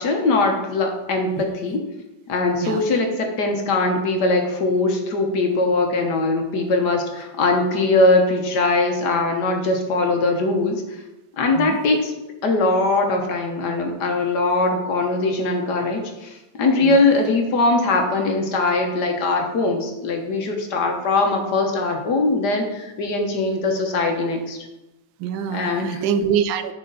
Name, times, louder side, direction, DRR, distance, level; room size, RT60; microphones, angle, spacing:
voice 1, 0.0-1.8 2.3-10.8 11.4-12.1 12.4-24.6 25.5-26.0, left 2 dB, 60° left, 3 dB, 1.5 m, -21 dB
voice 2, 25.2-26.7, right 7 dB, 80° right, 11 dB, 1.3 m, -24 dB
10.5 x 4.4 x 3.9 m, 1.0 s
omnidirectional pair, 2.1 m